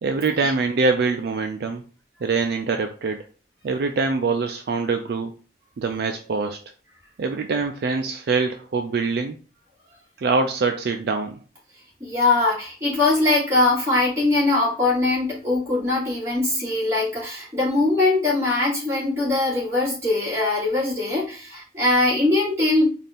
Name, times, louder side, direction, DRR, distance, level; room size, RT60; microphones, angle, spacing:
voice 1, 0.0-1.8 2.2-3.2 3.6-5.3 5.8-6.6 7.2-9.4 10.2-11.4, right 4 dB, 60° right, 6 dB, 0.4 m, -24 dB
voice 2, 12.0-22.9, left 2 dB, 15° right, -7 dB, 2.1 m, -21 dB
4.1 x 2.5 x 3.4 m, 0.37 s
head